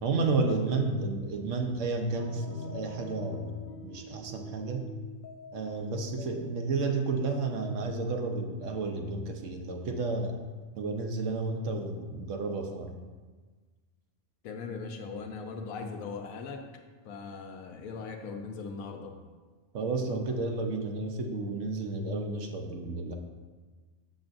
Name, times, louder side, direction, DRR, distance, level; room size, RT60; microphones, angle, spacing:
voice 1, 0.0-4.9 5.5-10.4 10.8-12.9 19.7-23.1, right 3 dB, 65° right, 3 dB, 1.0 m, -31 dB
sound 1, 2.1-7.1, left 2 dB, 65° left, 0.5 m, -46 dB
voice 2, 14.4-16.7 17.0-19.2, left 4 dB, 85° left, 4 dB, 1.1 m, -39 dB
7.2 x 6.3 x 2.5 m, 1.4 s
omnidirectional pair, 1.4 m